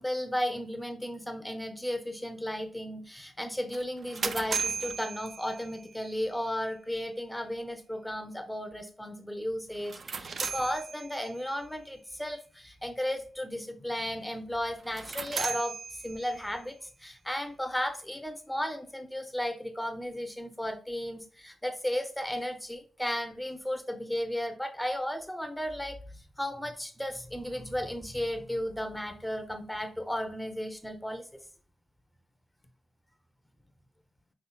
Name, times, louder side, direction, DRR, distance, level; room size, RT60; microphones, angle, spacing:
voice 1, 0.0-31.3, equal, 5° left, 7 dB, 0.5 m, -34 dB
sound 1, 3.7-6.0 9.7-11.4 14.8-16.6, right 5 dB, 55° right, 0.4 m, -36 dB
5.6 x 3.6 x 2.2 m, 0.43 s
cardioid pair, 90°, 0 cm